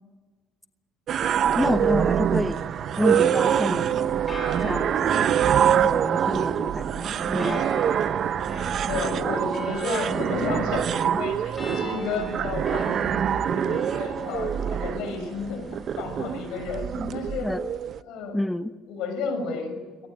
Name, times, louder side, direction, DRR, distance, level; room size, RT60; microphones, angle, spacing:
sound 1, 1.1-18.0, right 9 dB, 50° right, 0.7 m, -25 dB
voice 1, 1.5-2.6 3.0-4.2 4.6-7.6 17.0-17.1 17.4-17.6 18.3-18.7, left 1 dB, 5° left, 10 dB, 1.0 m, -28 dB
sound 2, 2.7-16.8, left 2 dB, 20° left, 7.7 m, -41 dB
voice 2, 8.9-15.7 15.9-17.5 18.1-18.4 18.9-20.1, left 4 dB, 75° left, 9 dB, 6.3 m, -32 dB
23.5 x 18.0 x 9.8 m, 1.3 s
cardioid pair, 110°, 0 cm